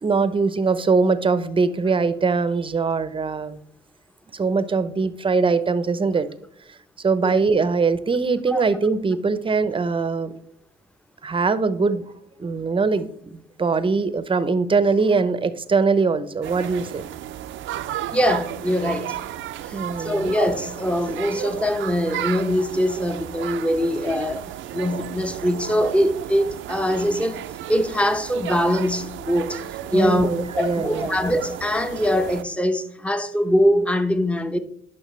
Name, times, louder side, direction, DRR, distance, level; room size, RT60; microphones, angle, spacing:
voice 1, 0.0-3.6 4.3-6.3 7.0-10.3 11.2-12.0 12.4-17.0 19.7-20.3 29.9-31.2, right 4 dB, 25° right, 0.7 m, -22 dB
sound 1, 16.4-32.4, right 12 dB, 75° right, 0.5 m, -33 dB
voice 2, 18.1-19.2 19.6-24.4 24.7-29.6 29.9-30.3 30.6-34.6, equal, 5° left, 0.8 m, -22 dB
10.0 x 5.7 x 3.2 m
cardioid pair, 90°, 20 cm